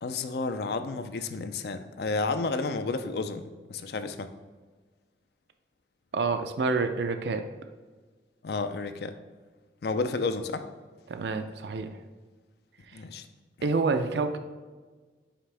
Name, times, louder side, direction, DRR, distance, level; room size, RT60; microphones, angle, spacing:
voice 1, 0.0-4.3 8.4-9.1 9.8-10.7 12.9-13.3, left 3 dB, 65° left, 9 dB, 0.4 m, -31 dB
voice 2, 6.1-7.5 11.1-11.9 12.9-13.0 13.6-14.4, right 4 dB, 75° right, 7 dB, 0.4 m, -28 dB
5.7 x 4.9 x 3.3 m, 1.4 s
head